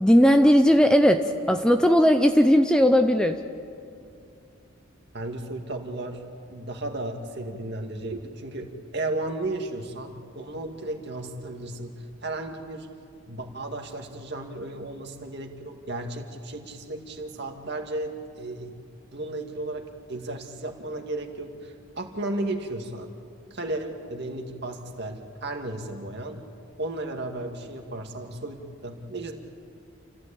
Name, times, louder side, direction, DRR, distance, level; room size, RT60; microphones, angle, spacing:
voice 1, 0.0-3.4, equal, 5° left, 6 dB, 0.6 m, -18 dB
voice 2, 5.1-6.2 6.5-12.9 13.3-18.8 19.1-23.1 23.5-26.4 26.8-29.3, right 2 dB, 50° right, 3 dB, 2.2 m, -34 dB
29.0 x 15.0 x 8.6 m, 2.5 s
head